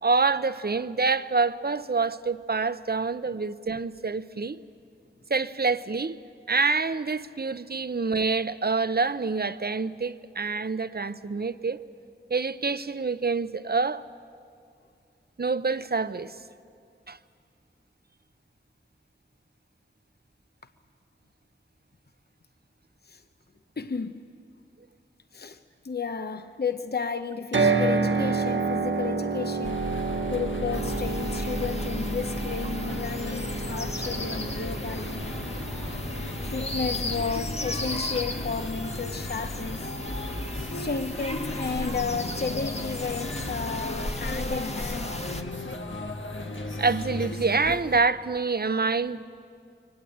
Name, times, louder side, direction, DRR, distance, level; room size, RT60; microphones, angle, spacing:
voice 1, 0.0-4.6 5.3-6.2 6.5-11.8 12.3-14.0 15.4-16.3 17.1-17.2 46.8-49.2, right 4 dB, 55° right, 0.7 m, -26 dB
voice 2, 23.8-24.2 25.3-25.6 25.8-29.8 30.3-35.4 36.5-39.9 40.7-45.2, left 5 dB, 55° left, 0.7 m, -33 dB
sound 1, 27.5-41.7, right 4 dB, 75° right, 1.0 m, -31 dB
sound 2, 29.6-48.0, left 2 dB, 85° left, 1.3 m, -36 dB
sound 3, 30.7-45.4, left 1 dB, 35° left, 1.2 m, -35 dB
23.5 x 19.0 x 8.5 m
wide cardioid pair, 50°, 20 cm